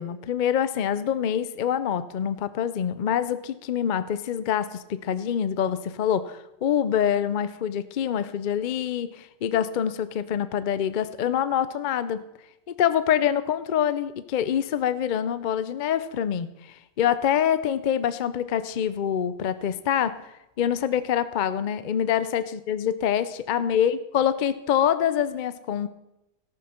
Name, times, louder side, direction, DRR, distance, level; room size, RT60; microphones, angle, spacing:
voice 1, 0.0-12.2 12.7-20.2 20.6-25.9, left 9 dB, 55° left, 14 dB, 0.5 m, -25 dB
13.5 x 12.0 x 4.3 m, 0.90 s
omnidirectional pair, 1.4 m